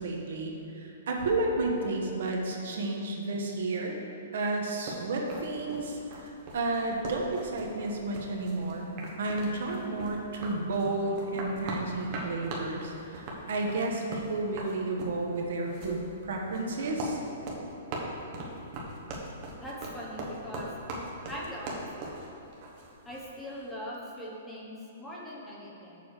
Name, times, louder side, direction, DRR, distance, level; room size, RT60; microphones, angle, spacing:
voice 1, 0.0-4.0 4.3-8.9 9.2-17.2, right 2 dB, 60° right, 0 dB, 1.1 m, -32 dB
sound 1, 4.9-23.3, right 2 dB, 30° right, 1.0 m, -40 dB
voice 2, 19.6-20.7 21.3-22.1 23.1-26.0, equal, 5° left, -5 dB, 0.8 m, -41 dB
6.9 x 5.0 x 6.5 m, 2.9 s
hypercardioid pair, 175°, 0 cm